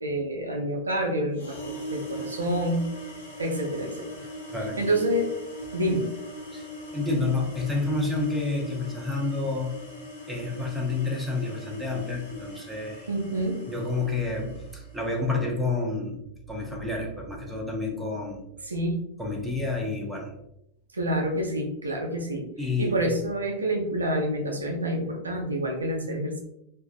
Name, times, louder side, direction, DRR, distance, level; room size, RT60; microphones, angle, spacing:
voice 1, 0.0-1.6 1.9-2.8 3.4-4.1 4.8-5.3 5.7-6.1 13.1-13.6 18.7-19.0 20.9-22.5 22.8-26.4, right 1 dB, 75° right, 2 dB, 0.4 m, -27 dB
sound 1, 1.3-15.2, equal, 65° left, 0.7 m, -41 dB
voice 2, 4.5-4.9 6.5-6.7 6.9-9.7 10.3-13.1 13.7-16.2 16.5-18.4 19.2-20.3 22.6-23.1, left 3 dB, 5° right, -2 dB, 0.6 m, -29 dB
2.5 x 2.3 x 2.3 m, 0.81 s
figure-of-eight pair, 90°, 0 cm